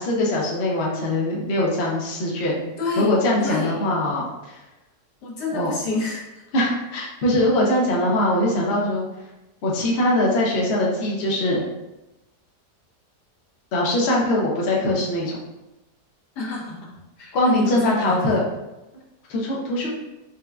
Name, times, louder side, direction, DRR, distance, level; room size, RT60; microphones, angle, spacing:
voice 1, 0.0-2.6 3.0-4.6 5.5-5.7 6.5-9.0 9.6-11.6 13.7-15.4 17.3-18.4 19.3-19.9, left 1 dB, 55° left, -3 dB, 0.7 m, -22 dB
voice 2, 2.8-3.1 3.4-3.7 5.2-6.3 16.3-18.3, left 3 dB, 75° left, -4 dB, 1.4 m, -29 dB
4.4 x 2.2 x 2.3 m, 1.0 s
omnidirectional pair, 1.8 m